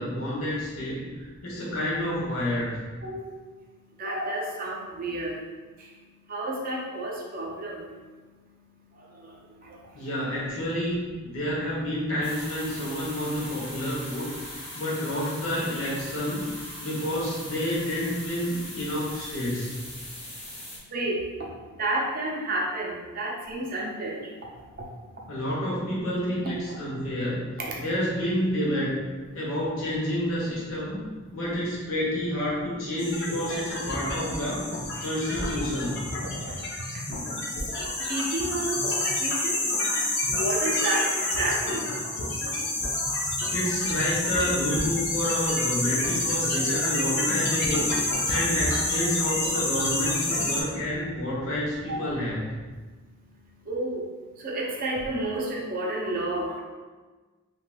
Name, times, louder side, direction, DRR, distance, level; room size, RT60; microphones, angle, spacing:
voice 1, 0.0-2.8 9.9-16.5 16.8-19.8 25.3-29.0 29.3-31.0 31.3-34.6 35.0-36.1 43.5-52.5, equal, 75° left, -5 dB, 1.0 m, -29 dB
voice 2, 3.0-3.3 4.0-5.4 5.8-5.9 6.3-7.9 8.9-10.0 20.9-21.5 21.8-24.4 24.8-24.9 34.9-35.1 36.4-37.0 37.6-37.7 38.1-39.7 40.4-41.9 42.4-42.5 49.0-49.1 50.3-50.4 51.9-52.0 53.6-54.1 54.3-56.6, right 1 dB, 40° right, -3 dB, 0.5 m, -31 dB
sound 1, 12.2-20.8, left 1 dB, 25° left, 0.8 m, -40 dB
sound 2, 33.0-50.6, left 2 dB, 50° left, 0.5 m, -28 dB
3.2 x 2.9 x 2.3 m, 1.3 s
head